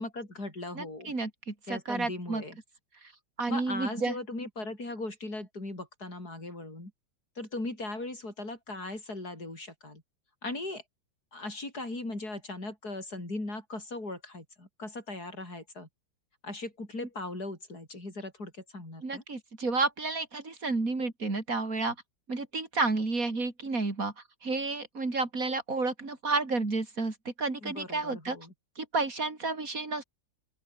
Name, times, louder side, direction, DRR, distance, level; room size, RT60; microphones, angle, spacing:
voice 1, 0.0-1.1 1.7-2.6 3.5-6.9 7.4-10.0 10.4-10.8 11.3-15.9 16.4-19.2 27.6-28.5, left 2 dB, 60° left, 8.2 m, -38 dB
voice 2, 0.8-2.4 3.4-4.1 19.0-22.0 22.3-24.1 24.4-28.4 28.8-30.0, right 3 dB, 50° right, 4.4 m, -31 dB
open air
omnidirectional pair, 1.9 m